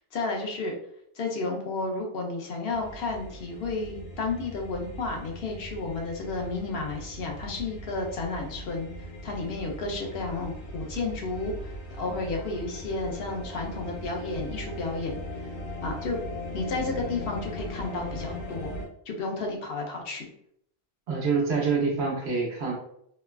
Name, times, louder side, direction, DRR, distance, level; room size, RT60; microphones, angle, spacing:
voice 1, 0.1-0.7 1.2-8.9 9.2-11.7 12.0-15.2 15.8-16.2 16.5-18.7 19.1-20.3, left 3 dB, 70° left, 1 dB, 0.8 m, -32 dB
sound 1, 2.7-18.8, equal, 90° left, 1.2 m, -39 dB
voice 2, 21.1-22.7, right 4 dB, 80° right, -2 dB, 1.1 m, -26 dB
3.1 x 2.2 x 2.2 m, 0.72 s
omnidirectional pair, 1.1 m